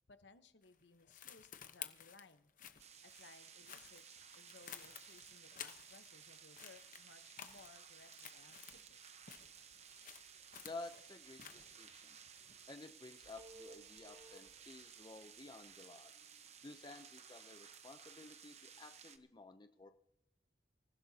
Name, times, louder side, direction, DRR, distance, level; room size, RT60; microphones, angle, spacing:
voice 1, 0.1-2.5 3.0-9.0, left 4 dB, 75° left, 10 dB, 1.0 m, -62 dB
sound 1, 0.6-6.3 6.5-8.9 9.2-12.6, left 9 dB, 45° left, 1.0 m, -54 dB
sound 2, 2.8-19.2, right 7 dB, 35° right, 1.0 m, -58 dB
Telephone, 9.4-15.7, right 2 dB, 75° right, 3.0 m, -64 dB
voice 2, 10.6-12.2 12.7-16.1 16.6-19.9, left 2 dB, 25° left, 8 dB, 0.6 m, -53 dB
25.5 x 15.5 x 2.8 m, 0.81 s
head